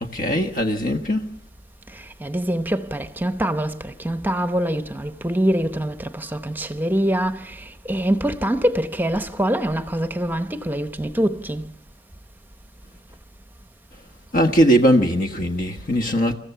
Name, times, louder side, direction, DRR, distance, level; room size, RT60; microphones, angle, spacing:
voice 1, 0.0-1.3 14.3-16.3, equal, 50° left, 1.4 m, -20 dB
voice 2, 2.2-7.4 7.9-11.7, right 1 dB, 10° right, 0.9 m, -24 dB
28.0 x 14.5 x 6.9 m
head